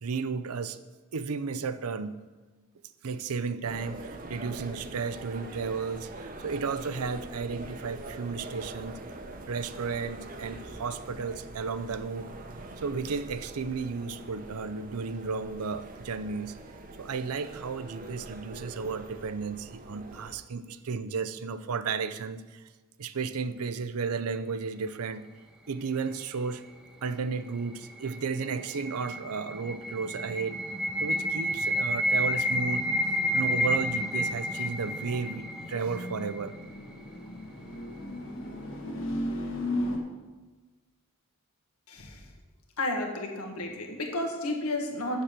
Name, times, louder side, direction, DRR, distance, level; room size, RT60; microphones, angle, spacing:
voice 1, 0.0-0.8 1.1-2.2 3.0-9.0 9.5-12.3 12.8-16.6 17.0-22.6 23.0-25.3 25.7-26.6 27.0-30.6 31.0-32.9 33.3-36.6, right 5 dB, 85° right, 12 dB, 0.6 m, -33 dB
sound 1, 3.6-20.4, right 2 dB, 40° right, 0.8 m, -43 dB
sound 2, 27.7-36.6, equal, 5° right, 0.7 m, -30 dB
sound 3, 34.8-40.0, left 1 dB, 60° left, 1.5 m, -36 dB
voice 2, 41.9-42.3 42.8-45.2, left 1 dB, 85° left, 1 dB, 1.7 m, -32 dB
7.2 x 6.6 x 7.4 m, 1.3 s
head